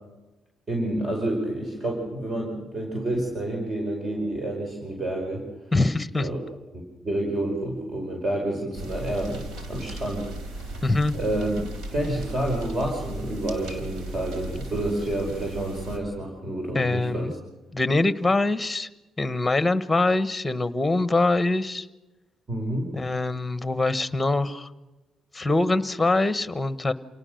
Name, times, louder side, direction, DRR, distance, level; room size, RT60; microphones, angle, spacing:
voice 1, 0.7-5.5 6.2-6.4 6.7-10.8 11.1-11.5 11.9-17.4 22.5-22.9, right 1 dB, 40° right, 1 dB, 5.3 m, -29 dB
voice 2, 5.7-6.3 10.8-11.1 16.7-17.3 17.7-18.9 19.2-21.9 22.9-24.7 25.3-26.9, left 2 dB, 15° left, 13 dB, 1.2 m, -23 dB
sound 1, 8.7-16.0, right 1 dB, 90° right, 3.9 m, -36 dB
28.0 x 18.5 x 6.6 m, 1.1 s
cardioid pair, 90°, 0 cm